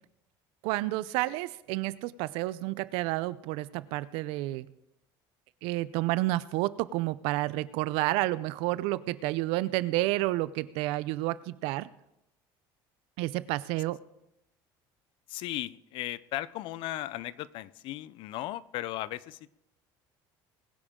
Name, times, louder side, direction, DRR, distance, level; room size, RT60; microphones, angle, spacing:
voice 1, 0.6-4.7 5.6-11.9 13.2-14.0, right 18 dB, 80° right, 17 dB, 0.6 m, -30 dB
voice 2, 15.3-19.6, left 15 dB, 65° left, 19 dB, 0.5 m, -36 dB
20.5 x 10.0 x 3.7 m, 0.85 s
cardioid pair, 130°, 9 cm